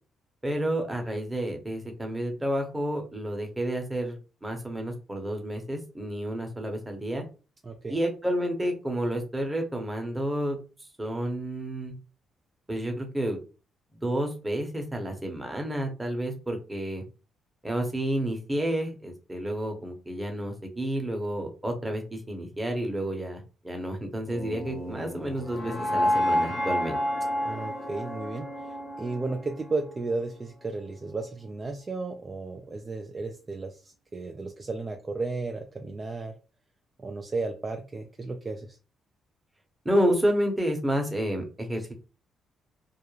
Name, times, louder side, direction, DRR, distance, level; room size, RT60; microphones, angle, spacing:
voice 1, 0.4-7.2 7.9-10.6 11.0-11.9 12.7-13.4 14.0-17.0 17.6-27.0 39.8-41.9, right 1 dB, 15° right, 3 dB, 0.7 m, -30 dB
voice 2, 7.6-8.0 27.4-36.3 37.0-38.8, right 3 dB, 30° right, 3 dB, 0.3 m, -34 dB
sound 1, 24.3-30.4, equal, 45° left, 1.0 m, -30 dB
2.3 x 2.0 x 3.0 m, 0.34 s
cardioid pair, 90°, 0 cm